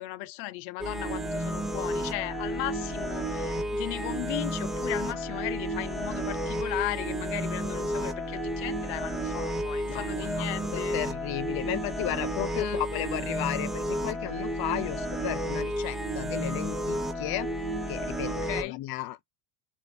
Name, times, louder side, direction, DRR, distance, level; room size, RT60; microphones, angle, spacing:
voice 1, 0.0-11.0 12.5-12.8 18.2-18.8, left 19 dB, 85° left, 0.7 m, -36 dB
sound 1, 0.8-18.6, right 1 dB, ahead, 1.0 m, -32 dB
voice 2, 9.8-10.5 10.7-17.5 17.9-19.2, left 15 dB, 45° left, 0.6 m, -34 dB
7.1 x 2.4 x 2.8 m
cardioid pair, 140°, 50 cm